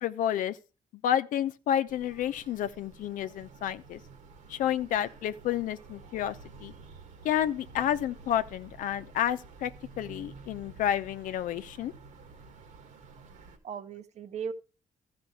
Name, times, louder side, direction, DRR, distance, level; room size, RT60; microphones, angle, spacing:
voice 1, 0.0-0.6 1.0-4.0 4.5-6.7 7.2-9.7 10.0-11.9, left 10 dB, 75° left, 0.7 m, -30 dB
sound 1, 1.9-13.6, right 4 dB, 75° right, 1.9 m, -51 dB
voice 2, 13.3-14.5, right 7 dB, 55° right, 1.0 m, -38 dB
13.5 x 5.1 x 4.6 m
supercardioid pair, 70°, 14 cm